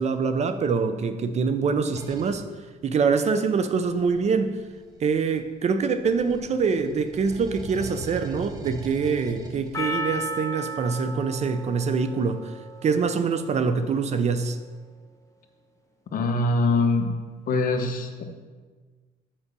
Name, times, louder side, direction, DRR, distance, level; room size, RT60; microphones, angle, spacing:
voice 1, 0.0-2.4 2.8-4.6 5.0-14.6, right 5 dB, 40° right, 10 dB, 0.6 m, -25 dB
sound 1, 1.9-2.4 3.7-5.6 6.0-10.2, right 3 dB, 20° right, 1.0 m, -41 dB
Percussion, 9.7-14.2, equal, 20° left, 0.7 m, -35 dB
voice 2, 16.1-17.1 17.5-18.2, left 2 dB, 55° left, 5 dB, 1.0 m, -23 dB
7.3 x 5.0 x 6.7 m, 1.4 s
cardioid pair, 110°, 17 cm